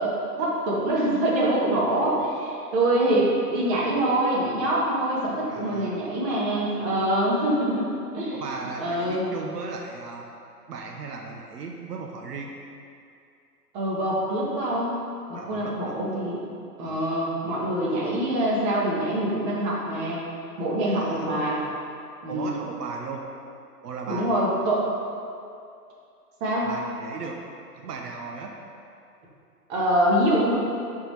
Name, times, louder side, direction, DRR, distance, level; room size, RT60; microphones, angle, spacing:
voice 1, 0.0-7.9 8.1-8.4 8.8-9.3 13.7-15.0 15.3-16.4 16.8-20.2 20.6-21.6 22.2-22.5 24.1-24.9 26.4-26.7 29.7-30.5, right 1 dB, 30° right, -4 dB, 1.3 m, -25 dB
voice 2, 5.5-6.0 8.3-10.3 10.7-12.5 15.3-16.0 16.8-17.1 20.9-21.3 22.3-23.2 23.8-24.3 26.5-27.4 27.7-28.5, right 4 dB, 75° right, 1 dB, 0.8 m, -36 dB
9.6 x 3.8 x 3.2 m, 2.5 s
hypercardioid pair, 140°, 48 cm